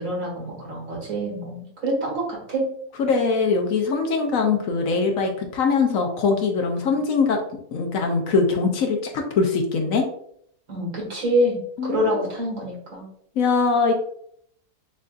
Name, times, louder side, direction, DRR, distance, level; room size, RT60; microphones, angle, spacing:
voice 1, 0.0-2.6 10.7-13.0, equal, 70° right, -4 dB, 2.2 m, -26 dB
voice 2, 3.0-7.4 7.7-10.0 11.8-12.1 13.4-13.9, left 4 dB, 70° left, 3 dB, 1.0 m, -22 dB
6.6 x 2.6 x 2.4 m, 0.68 s
omnidirectional pair, 1.6 m